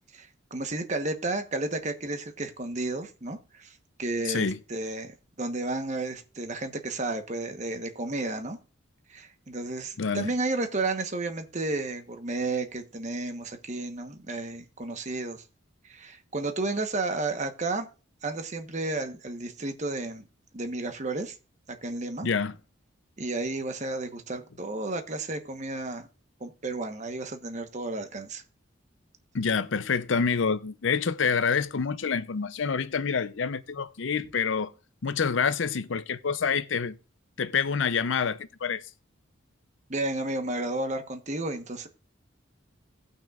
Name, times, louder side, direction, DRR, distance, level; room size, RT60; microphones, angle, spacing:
voice 1, 0.1-3.7 4.0-8.6 9.1-15.4 15.8-17.9 18.2-20.2 20.5-21.3 21.7-22.3 23.2-26.1 26.4-28.4 39.9-41.9, right 2 dB, 35° right, 1.1 m, -32 dB
voice 2, 4.3-4.6 10.0-10.3 22.2-22.6 29.3-34.7 35.0-37.0 37.4-38.8, left 6 dB, 70° left, 0.6 m, -27 dB
17.5 x 6.1 x 2.4 m
head